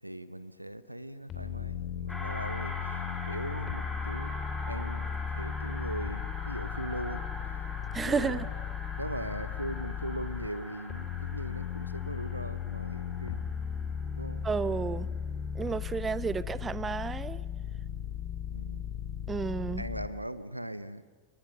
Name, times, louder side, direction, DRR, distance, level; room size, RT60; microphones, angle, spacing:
voice 1, 0.0-7.2 8.0-8.5 9.0-13.5 14.2-14.5 18.5-18.8 19.8-21.0, right 1 dB, 85° right, 1.0 m, -40 dB
sound 1, 1.3-10.5 10.9-20.1, left 8 dB, 30° left, 3.3 m, -36 dB
sound 2, 2.1-14.8, left 1 dB, 5° left, 4.3 m, -43 dB
voice 2, 7.9-8.4 14.4-15.1 15.5-17.4 19.3-19.8, right 5 dB, 15° right, 0.8 m, -31 dB
29.0 x 23.0 x 6.5 m
figure-of-eight pair, 90°, 0 cm